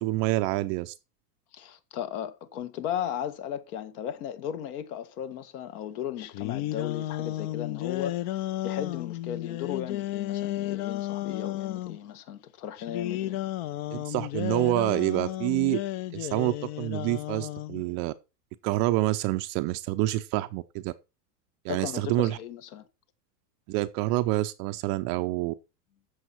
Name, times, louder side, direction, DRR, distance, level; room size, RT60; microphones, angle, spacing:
voice 1, 0.0-0.9 13.9-15.8 16.1-18.1 18.6-20.9 21.6-22.4 23.7-25.5, right 18 dB, 30° right, 0.5 m, -27 dB
voice 2, 1.5-13.4 21.7-22.9, left 10 dB, 65° left, 1.8 m, -36 dB
sound 1, 6.2-12.0 12.8-17.8, left 14 dB, 40° left, 0.5 m, -33 dB
14.5 x 6.4 x 4.5 m
supercardioid pair, 145°, 49 cm